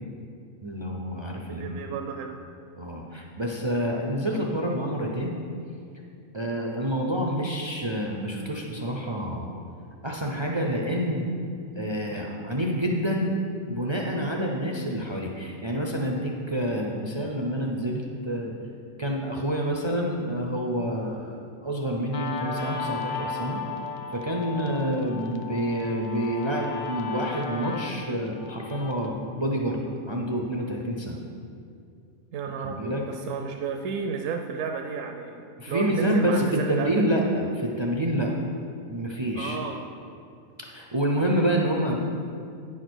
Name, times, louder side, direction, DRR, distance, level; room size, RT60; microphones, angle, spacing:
voice 1, 0.6-1.8 2.8-5.3 6.3-9.5 10.0-11.3 11.7-13.3 13.7-18.5 19.0-23.6 24.1-31.2 32.6-33.1 35.6-38.3 38.9-39.6 40.6-42.0, equal, 45° right, 0 dB, 0.3 m, -28 dB
voice 2, 1.5-2.4 32.3-36.9 39.3-40.0, right 5 dB, 70° right, 4 dB, 0.9 m, -33 dB
Guitar, 22.1-29.1, left 4 dB, 55° left, 0.5 m, -35 dB
9.3 x 4.9 x 6.2 m, 2.4 s
omnidirectional pair, 1.5 m